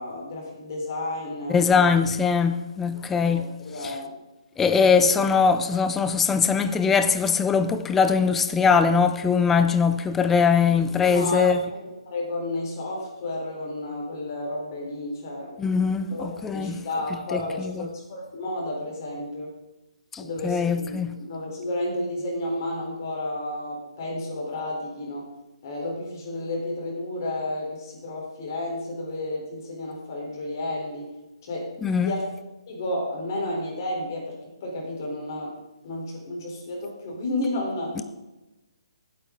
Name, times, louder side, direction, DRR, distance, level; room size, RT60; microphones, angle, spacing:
voice 1, 0.0-2.0 3.2-4.2 4.7-5.1 10.6-15.8 16.1-19.5 20.2-25.3 25.6-31.1 31.4-31.7 32.0-32.3 32.7-35.5 35.8-38.0, left 1 dB, 40° left, 3.9 m, -32 dB
voice 2, 1.5-3.5 3.8-3.9 4.6-11.6 15.6-16.8 17.3-17.9 20.1-21.1 31.8-32.1 38.0-38.1, left 5 dB, 5° left, 0.4 m, -21 dB
18.0 x 8.6 x 3.8 m
hypercardioid pair, 165°, 3 cm